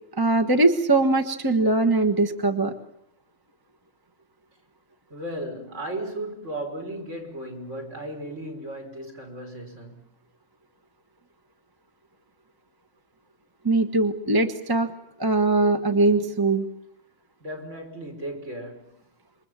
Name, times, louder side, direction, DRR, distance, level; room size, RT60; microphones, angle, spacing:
voice 1, 0.2-2.7 13.6-14.9 15.2-16.7, right 2 dB, 15° right, 1.4 m, -21 dB
voice 2, 5.1-10.0 17.4-19.0, right 1 dB, 55° right, 5.6 m, -35 dB
28.0 x 24.0 x 7.6 m
omnidirectional pair, 1.5 m